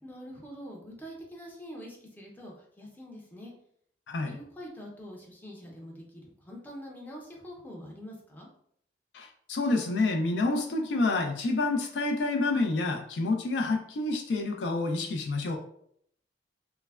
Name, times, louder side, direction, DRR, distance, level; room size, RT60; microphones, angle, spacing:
voice 1, 0.0-3.5 4.3-8.5, equal, 10° left, -2 dB, 0.6 m, -45 dB
voice 2, 4.1-4.4 9.1-15.6, left 2 dB, 75° left, 3 dB, 0.4 m, -28 dB
3.1 x 2.1 x 2.3 m, 0.67 s
head